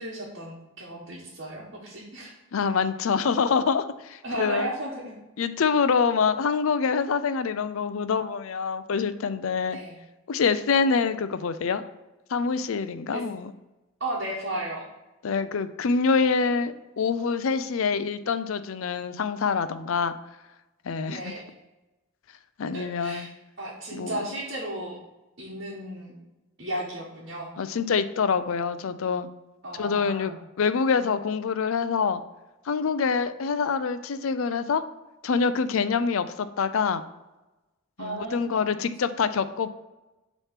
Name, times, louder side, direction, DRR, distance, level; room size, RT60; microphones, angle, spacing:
voice 1, 0.0-2.3 4.2-5.1 9.7-10.0 13.1-13.2 14.0-14.8 21.1-21.4 22.7-23.3 23.6-25.0 25.4-26.1 26.6-27.5 29.6-30.4 38.0-38.7, right 1 dB, 55° right, -6 dB, 1.3 m, -34 dB
voice 2, 2.5-4.7 5.4-9.8 10.3-11.8 12.3-13.5 15.2-20.1 20.8-21.3 22.6-23.3 23.9-24.2 27.6-29.3 29.7-30.3 30.6-32.2 32.7-34.8 35.2-37.0 38.0-39.7, left 5 dB, 80° left, 12 dB, 0.4 m, -25 dB
6.5 x 3.1 x 5.8 m, 1.0 s
head